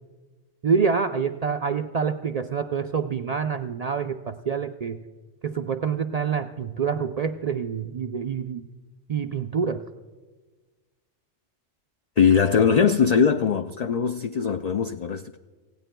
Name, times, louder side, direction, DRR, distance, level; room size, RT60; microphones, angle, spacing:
voice 1, 0.6-5.0 5.4-8.6 9.1-9.8, right 6 dB, 60° right, 0.4 m, -26 dB
voice 2, 12.2-15.4, left 6 dB, 65° left, 0.4 m, -21 dB
26.5 x 17.0 x 2.2 m
omnidirectional pair, 1.2 m